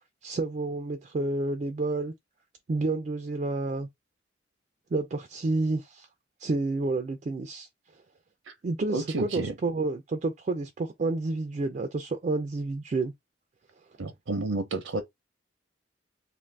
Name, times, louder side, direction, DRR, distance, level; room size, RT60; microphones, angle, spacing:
voice 1, 0.2-2.1 2.7-3.9 4.9-6.1 6.4-7.7 8.6-13.1, right 3 dB, 40° right, 0.3 m, -29 dB
voice 2, 8.9-9.5 14.0-15.0, right 2 dB, 85° right, 0.6 m, -31 dB
2.6 x 2.5 x 3.2 m
head